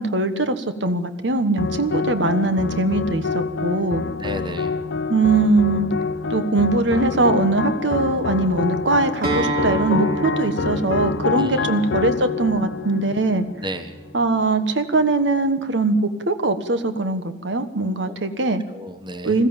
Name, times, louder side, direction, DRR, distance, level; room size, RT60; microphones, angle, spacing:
voice 1, 0.0-4.0 5.1-5.9 6.3-13.4 14.1-18.6 19.2-19.5, right 2 dB, 80° right, 10 dB, 1.3 m, -21 dB
sound 1, 1.6-14.1, left 4 dB, 70° left, 0.6 m, -27 dB
voice 2, 4.2-4.7 11.4-11.7 13.6-14.0 18.1-18.2 18.7-19.4, equal, 25° right, 10 dB, 1.3 m, -33 dB
Acoustic guitar, 9.2-14.4, right 1 dB, 50° right, 4.1 m, -30 dB
21.5 x 14.0 x 8.9 m, 1.2 s
head